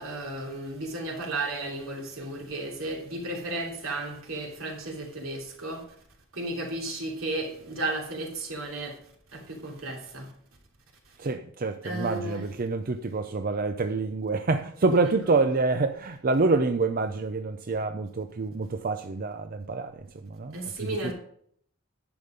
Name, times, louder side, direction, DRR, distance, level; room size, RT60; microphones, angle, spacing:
voice 1, 0.0-5.8 6.4-8.9 9.3-10.3 11.8-12.4 20.5-21.1, right 2 dB, 75° right, 3.1 m, -34 dB
voice 2, 11.2-20.0 20.4-21.1, right 3 dB, 45° right, 0.5 m, -27 dB
10.5 x 7.1 x 5.1 m
head